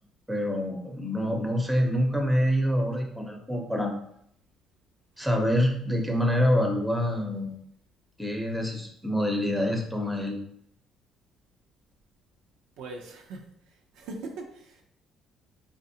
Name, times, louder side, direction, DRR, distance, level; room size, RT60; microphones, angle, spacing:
voice 1, 0.3-3.9 5.2-7.5 8.2-10.4, equal, 5° right, 2 dB, 0.7 m, -26 dB
voice 2, 12.8-13.4 13.9-14.8, right 3 dB, 85° right, 2 dB, 0.5 m, -40 dB
4.0 x 2.5 x 2.7 m, 0.70 s
cardioid pair, 90°, 0 cm